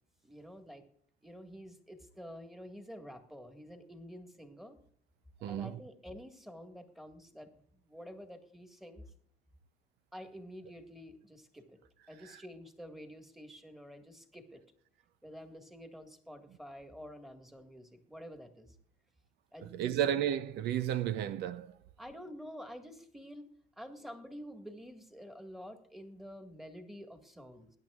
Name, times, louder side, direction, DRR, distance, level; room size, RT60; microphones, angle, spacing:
voice 1, 0.2-0.9 1.2-4.8 5.4-9.0 10.1-11.8 12.1-14.6 15.2-18.7 19.5-20.0 22.0-23.5 23.8-27.7, equal, ahead, 1.8 m, -49 dB
voice 2, 5.4-5.8 12.2-12.4 19.7-21.8, right 10 dB, 80° right, 0.6 m, -33 dB
21.0 x 10.5 x 2.4 m
cardioid pair, 110°, 17 cm